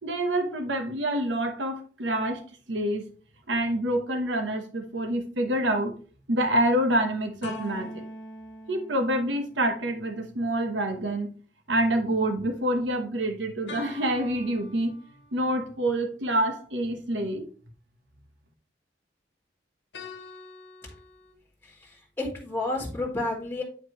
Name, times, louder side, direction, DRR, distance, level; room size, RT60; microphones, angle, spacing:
voice 1, 0.0-2.4 2.7-3.0 3.5-5.9 6.3-8.0 8.7-11.3 11.7-15.0 15.3-17.4, right 1 dB, 90° right, 5 dB, 1.2 m, -27 dB
sound 1, 7.4-10.0 13.7-15.5 19.9-21.3, left 1 dB, 75° left, 1.2 m, -43 dB
voice 2, 21.8-23.6, left 2 dB, 15° left, -3 dB, 1.4 m, -31 dB
8.5 x 4.7 x 3.1 m, 0.40 s
head